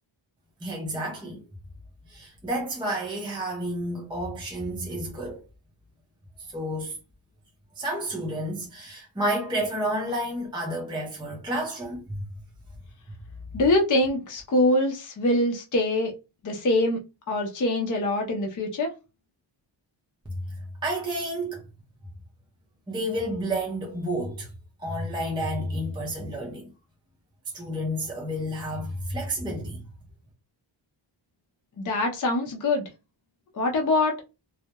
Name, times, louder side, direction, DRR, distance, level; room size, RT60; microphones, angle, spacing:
voice 1, 0.6-1.4 2.1-5.4 6.5-6.9 7.8-12.2 20.3-20.5 20.8-21.6 22.9-24.5 24.8-26.7 27.5-29.8, right 1 dB, 10° right, 0.5 m, -30 dB
voice 2, 13.5-16.1 16.4-17.0 17.3-18.9 31.8-32.8 33.5-34.2, left 2 dB, 40° left, 0.6 m, -24 dB
2.2 x 2.0 x 2.8 m
wide cardioid pair, 135°, 47 cm